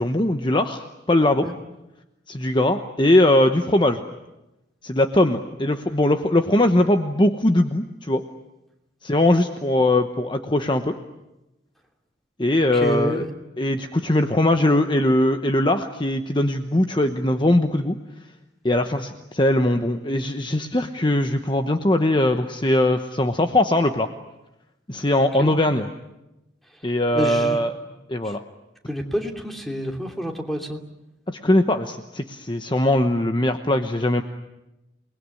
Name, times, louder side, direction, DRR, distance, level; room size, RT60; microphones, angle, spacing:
voice 1, 0.0-1.5 2.3-4.0 4.8-8.2 9.0-10.9 12.4-13.3 13.6-18.0 18.6-24.1 24.9-25.9 26.8-27.7 28.1-28.4 31.3-34.2, left 1 dB, 25° left, 7 dB, 1.0 m, -20 dB
voice 2, 12.7-13.3 25.4-25.5 27.1-27.7 28.2-28.3 28.9-30.8, equal, ahead, 3 dB, 2.9 m, -28 dB
29.0 x 20.5 x 9.7 m, 0.97 s
head